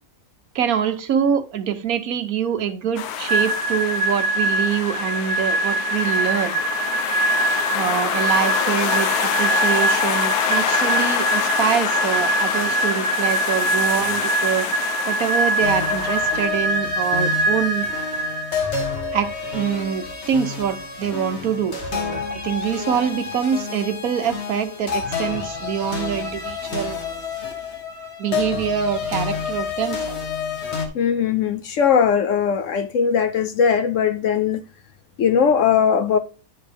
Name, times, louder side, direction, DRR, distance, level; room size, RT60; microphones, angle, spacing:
voice 1, 0.5-6.5 7.7-14.7 15.1-17.9 19.1-27.0 28.2-30.2, right 8 dB, 70° right, 1.3 m, -25 dB
sound 1, 3.0-16.5, left 9 dB, 85° left, 1.2 m, -26 dB
sound 2, 3.3-18.9, right 3 dB, 40° right, 1.4 m, -23 dB
sound 3, 15.6-30.9, left 5 dB, 50° left, 1.5 m, -29 dB
voice 2, 30.9-34.6 35.2-36.2, left 7 dB, 65° left, 0.9 m, -19 dB
9.8 x 4.5 x 3.4 m
omnidirectional pair, 1.6 m